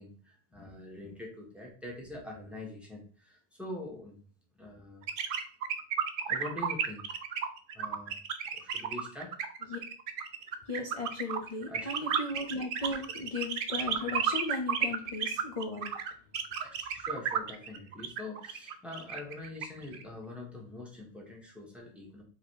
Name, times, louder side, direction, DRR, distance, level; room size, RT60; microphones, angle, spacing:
voice 1, 0.0-4.2 4.5-5.4 6.3-7.1 7.7-8.2 8.5-9.3 11.7-11.9 12.8-12.9 16.6-22.2, left 2 dB, ahead, -2 dB, 1.1 m, -44 dB
sound 1, 5.1-20.0, right 7 dB, 60° right, 0.7 m, -33 dB
voice 2, 10.7-15.9, left 2 dB, 45° left, 0 dB, 0.6 m, -36 dB
3.9 x 2.8 x 4.6 m, 0.42 s
omnidirectional pair, 1.2 m